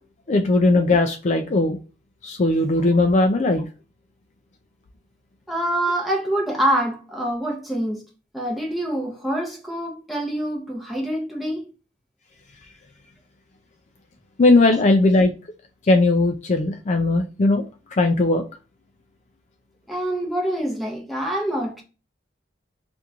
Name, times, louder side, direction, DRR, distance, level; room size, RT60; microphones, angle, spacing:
voice 1, 0.3-1.8 2.2-3.7 14.4-15.3 15.9-17.6 17.9-18.4, left 2 dB, 40° left, 0.4 m, -18 dB
voice 2, 5.5-8.0 8.3-11.7 19.9-21.8, right 1 dB, ahead, 0.9 m, -25 dB
2.9 x 2.6 x 3.4 m
head